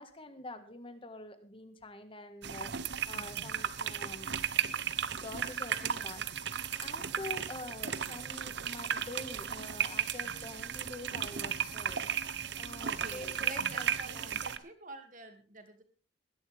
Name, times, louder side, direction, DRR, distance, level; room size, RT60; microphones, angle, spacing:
voice 1, 0.0-4.3 5.2-6.3 6.7-12.1 12.5-14.4, left 2 dB, 25° left, 9 dB, 1.6 m, -46 dB
sound 1, 2.4-14.6, right 8 dB, 55° right, 0.9 m, -35 dB
voice 2, 12.8-15.8, right 3 dB, 40° right, 6 dB, 2.3 m, -48 dB
20.5 x 11.0 x 3.5 m, 0.37 s
head